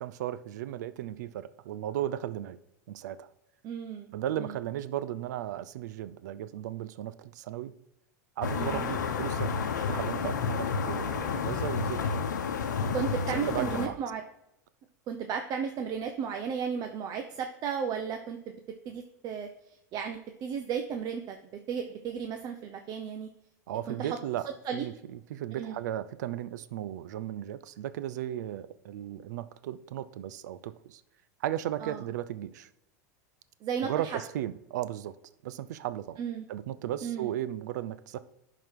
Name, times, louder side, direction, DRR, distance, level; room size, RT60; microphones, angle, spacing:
voice 1, 0.0-2.6 2.9-3.3 4.1-7.7 8.4-9.5 9.9-12.3 13.3-14.0 23.7-24.5 24.7-31.0 31.4-32.7 33.8-35.1 35.4-36.2 36.5-38.2, right 12 dB, 75° right, 15 dB, 0.5 m, -35 dB
voice 2, 3.6-4.1 4.4-4.6 8.6-8.8 12.9-14.2 15.1-18.5 18.8-19.5 19.9-21.4 21.7-23.3 23.9-24.2 24.5-24.9 25.5-25.8 31.8-32.0 33.6-34.2 36.2-36.4 37.0-37.3, right 7 dB, 45° right, 5 dB, 0.8 m, -34 dB
sound 1, 8.4-13.9, left 5 dB, 90° left, 0.9 m, -30 dB
11.0 x 3.9 x 4.7 m, 0.83 s
hypercardioid pair, 100°, 9 cm